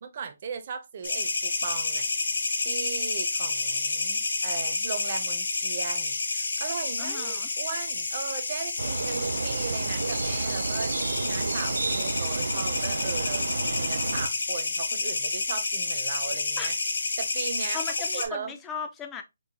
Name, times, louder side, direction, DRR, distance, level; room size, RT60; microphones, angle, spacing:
voice 1, 0.0-2.1 2.6-10.9 11.3-16.8 17.2-17.8 18.1-18.6, right 6 dB, 35° right, 0.6 m, -37 dB
sound 1, 1.0-18.3, left 3 dB, 75° left, 0.9 m, -30 dB
voice 2, 7.0-7.5 16.6-16.7 17.7-19.2, left 6 dB, 10° left, 0.4 m, -37 dB
sound 2, 8.8-14.3, right 4 dB, 70° right, 0.3 m, -31 dB
4.6 x 2.2 x 2.6 m
hypercardioid pair, 175°, 0 cm